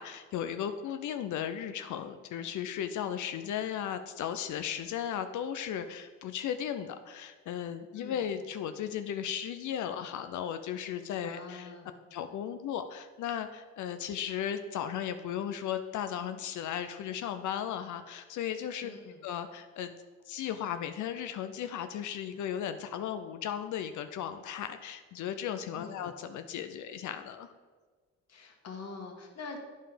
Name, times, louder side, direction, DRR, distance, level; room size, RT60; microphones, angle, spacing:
voice 1, 0.0-11.7 12.1-18.9 19.2-19.9 20.3-27.5, left 9 dB, 75° left, 9 dB, 0.6 m, -36 dB
voice 2, 7.9-8.3 11.2-12.0 18.8-19.2 25.7-26.1 28.3-29.6, left 4 dB, 55° left, 3 dB, 1.6 m, -44 dB
9.1 x 5.5 x 5.1 m, 1.4 s
cardioid pair, 90°, 30 cm